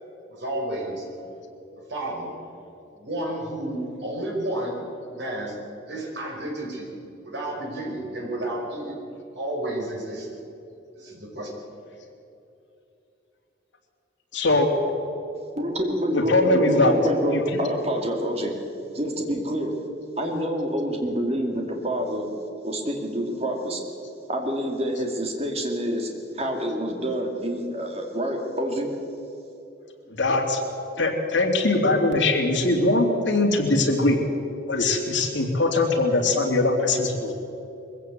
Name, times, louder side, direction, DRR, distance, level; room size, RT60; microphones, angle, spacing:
voice 1, 0.3-1.0 1.7-2.3 2.9-4.8 5.1-5.6 5.9-6.9 7.2-9.0 9.3-10.3 10.9-11.5, right 1 dB, 60° right, -1 dB, 4.9 m, -31 dB
voice 2, 14.3-14.7 16.1-17.0 17.3-17.6 24.9-25.0 30.2-30.6 31.0-34.2 34.7-37.3, left 2 dB, 65° left, 1 dB, 2.9 m, -21 dB
voice 3, 15.6-18.5 18.9-19.8 20.2-22.3 22.6-23.8 24.3-28.9, equal, 30° right, 2 dB, 2.4 m, -27 dB
21.5 x 15.5 x 8.3 m, 2.8 s
head